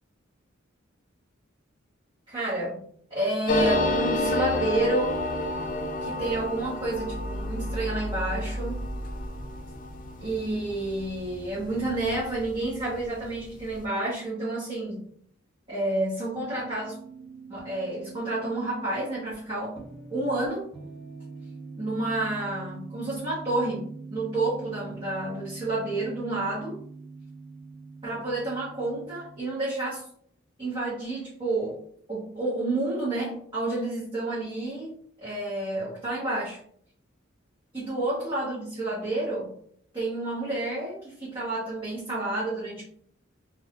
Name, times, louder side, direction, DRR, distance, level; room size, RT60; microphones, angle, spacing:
voice 1, 2.3-2.8 3.1-5.2 6.0-8.8 10.2-15.0 15.7-17.0 17.5-19.8 20.1-20.7 21.8-26.8 28.0-30.1 30.6-31.8 32.1-34.9 35.2-36.6 37.7-39.5 39.9-42.8, right 2 dB, 25° right, -9 dB, 0.9 m, -30 dB
sound 1, 3.5-12.6 12.9-13.0 13.2-13.8, left 1 dB, 40° left, 0.4 m, -30 dB
sound 2, 16.3-29.4, right 4 dB, 5° left, 0.9 m, -43 dB
2.5 x 2.4 x 3.5 m, 0.62 s
head